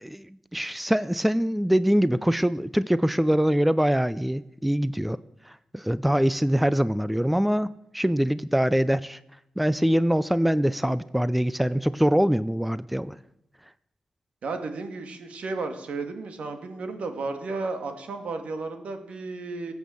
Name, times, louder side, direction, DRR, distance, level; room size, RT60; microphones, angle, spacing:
voice 1, 0.0-5.2 5.5-7.7 7.9-9.2 9.6-13.2, equal, 5° right, 16 dB, 0.5 m, -23 dB
voice 2, 14.4-19.7, right 3 dB, 75° right, 6 dB, 2.2 m, -33 dB
22.0 x 8.4 x 7.1 m, 0.82 s
wide cardioid pair, 95°, 2 cm